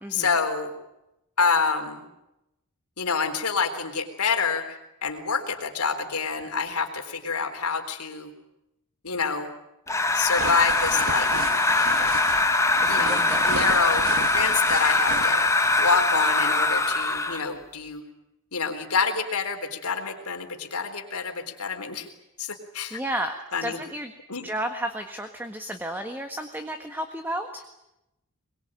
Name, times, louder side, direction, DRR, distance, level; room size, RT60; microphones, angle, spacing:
voice 1, 0.1-0.7 1.4-2.0 3.0-8.3 9.0-9.5 10.1-11.3 12.9-15.4 15.8-18.0 18.5-22.1 22.4-23.0 23.5-23.8 24.3-24.5, left 5 dB, 80° left, 5 dB, 4.0 m, -27 dB
sound 1, 9.9-17.5, left 2 dB, 15° left, 1.5 m, -22 dB
sound 2, 10.2-16.0, right 5 dB, 65° right, 1.4 m, -35 dB
voice 2, 12.8-13.4 22.9-23.3 23.6-24.1 24.4-27.6, right 1 dB, 10° right, 6 dB, 1.6 m, -32 dB
23.5 x 21.5 x 9.1 m, 0.89 s
head